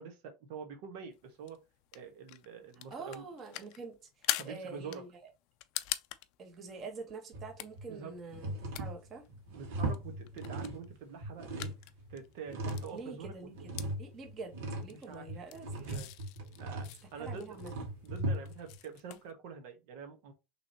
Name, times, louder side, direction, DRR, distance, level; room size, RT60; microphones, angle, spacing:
voice 1, 0.0-1.6 1.9-3.3 4.3-5.0 7.9-8.1 9.6-11.7 12.1-13.7 14.9-15.3 15.7-16.1 16.6-17.5 18.0-20.3, right 6 dB, 70° right, 1.2 m, -46 dB
sound 1, 1.1-19.3, left 16 dB, 55° left, 0.4 m, -45 dB
voice 2, 2.9-4.0 4.4-5.1 6.4-9.2 12.6-14.5 14.8-16.0 17.2-17.7, right 4 dB, 25° right, 1.1 m, -46 dB
sound 2, 7.3-7.9 8.3-10.9 11.2-12.9 13.2-18.8, right 1 dB, 85° right, 1.8 m, -39 dB
5.9 x 3.2 x 2.8 m
cardioid pair, 165°, 0 cm